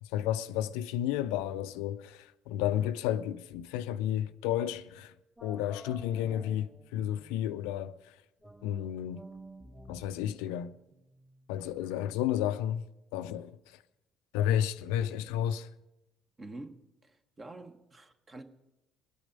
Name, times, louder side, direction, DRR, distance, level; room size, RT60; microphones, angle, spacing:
voice 1, 0.0-5.1 5.4-8.1 8.6-9.2 9.9-10.7 11.5-12.9 13.1-13.8 14.3-15.7, left 11 dB, 70° left, 0.4 m, -32 dB
sound 1, 5.4-7.6 8.4-11.7, right 1 dB, 10° right, 2.2 m, -52 dB
voice 2, 16.4-18.4, right 2 dB, 30° right, 1.3 m, -47 dB
21.5 x 9.1 x 5.2 m
hypercardioid pair, 50°, 0 cm